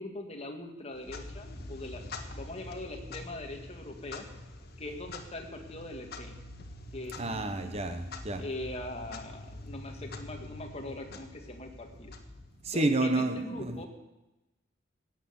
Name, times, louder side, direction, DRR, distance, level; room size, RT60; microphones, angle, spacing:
voice 1, 0.0-2.0 2.3-4.3 4.8-6.4 6.9-7.6 8.3-12.1 12.7-13.9, left 1 dB, 30° left, 3 dB, 2.0 m, -41 dB
Clock, 0.9-12.9, left 2 dB, 50° left, 1.5 m, -45 dB
voice 2, 7.2-8.4 12.6-13.8, right 2 dB, 30° right, 8 dB, 0.9 m, -30 dB
16.0 x 9.2 x 7.1 m, 1.0 s
head